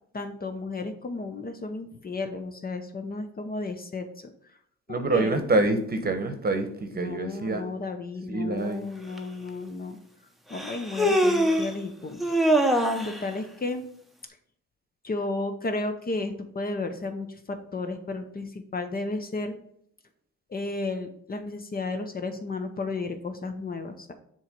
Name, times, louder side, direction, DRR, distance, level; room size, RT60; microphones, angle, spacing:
voice 1, 0.1-4.3 4.9-5.4 7.0-10.0 10.5-12.2 13.0-13.8 15.0-19.5 20.5-24.1, left 3 dB, 30° left, 7 dB, 0.7 m, -33 dB
voice 2, 4.9-7.6 8.3-8.8, right 2 dB, 30° right, 7 dB, 1.0 m, -26 dB
Human voice, 9.2-9.3 10.5-11.7 12.2-13.2, equal, ahead, 0.8 m, -23 dB
7.1 x 3.0 x 5.1 m, 0.67 s
cardioid pair, 90°, 30 cm